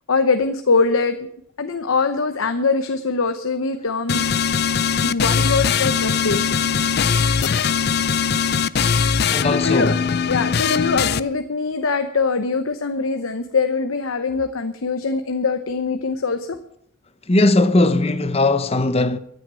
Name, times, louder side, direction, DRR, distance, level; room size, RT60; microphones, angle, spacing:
voice 1, 0.1-1.2 1.6-4.2 5.0-6.6 9.5-10.0 10.3-16.6, left 4 dB, 90° left, 0.9 m, -22 dB
sound 1, 4.1-11.2, left 6 dB, 50° left, 0.5 m, -20 dB
voice 2, 9.3-10.0 17.3-19.2, left 2 dB, 30° left, 0.8 m, -18 dB
14.5 x 9.2 x 7.6 m
head